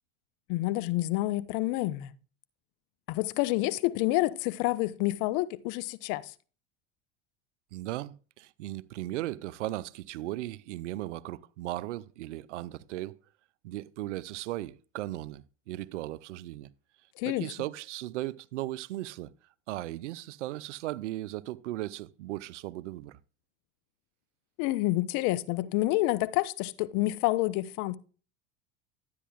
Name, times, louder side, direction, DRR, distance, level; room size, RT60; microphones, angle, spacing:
voice 1, 0.5-2.1 3.1-6.3 17.2-17.5 24.6-28.0, left 18 dB, 60° left, 0.8 m, -28 dB
voice 2, 7.7-13.2 13.6-16.7 17.2-19.3 19.7-23.2, right 16 dB, 80° right, 0.6 m, -37 dB
12.5 x 9.3 x 2.4 m
hypercardioid pair, 80°, 35 cm